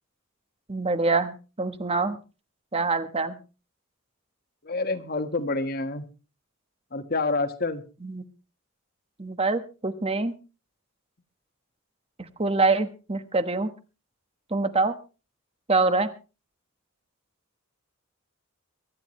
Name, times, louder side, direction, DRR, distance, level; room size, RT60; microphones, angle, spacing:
voice 1, 0.7-2.2 2.7-3.4 8.0-8.2 9.2-10.3 12.4-13.7 14.5-14.9 15.7-16.1, right 3 dB, 30° right, 10 dB, 1.3 m, -25 dB
voice 2, 4.6-6.0 6.9-7.8, left 3 dB, 45° left, 9 dB, 1.5 m, -28 dB
23.5 x 11.5 x 3.2 m, 0.32 s
head